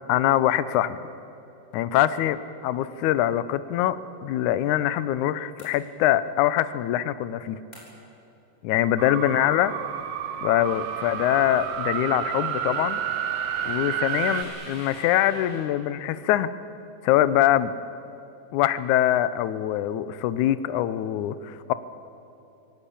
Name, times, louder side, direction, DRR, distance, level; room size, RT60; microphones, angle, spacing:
voice 1, 0.1-1.0 1.7-2.4 2.6-7.6 8.6-9.7 10.4-13.0 13.7-16.5 17.0-17.7 18.5-21.7, left 12 dB, 75° left, 14 dB, 1.9 m, -23 dB
sound 1, 5.6-6.3 7.7-8.2, equal, 10° left, 7.3 m, -51 dB
sound 2, 9.0-14.4, right 9 dB, 70° right, 1.6 m, -30 dB
Subway metro underground, 10.6-15.6, equal, 35° right, 7.5 m, -44 dB
26.5 x 18.0 x 8.6 m, 2.9 s
omnidirectional pair, 4.1 m